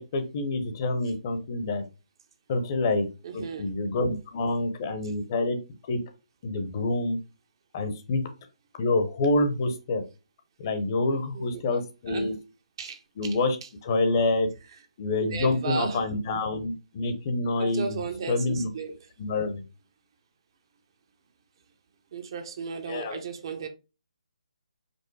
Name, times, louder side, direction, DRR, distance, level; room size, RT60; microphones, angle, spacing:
voice 1, 0.0-1.8 2.5-3.1 3.3-5.6 5.9-6.0 6.4-7.2 7.7-8.2 8.8-10.0 10.6-12.3 13.2-13.6 13.8-14.5 15.0-18.0 18.3-18.7 19.2-19.6 22.9-23.2, left 2 dB, 30° left, 0.8 m, -27 dB
voice 2, 3.2-3.7 11.1-11.8 12.1-12.3 12.8-13.7 15.2-16.1 17.6-19.0 22.1-23.7, right 6 dB, 40° right, 0.8 m, -35 dB
5.3 x 2.0 x 4.6 m
hypercardioid pair, 160°, 4 cm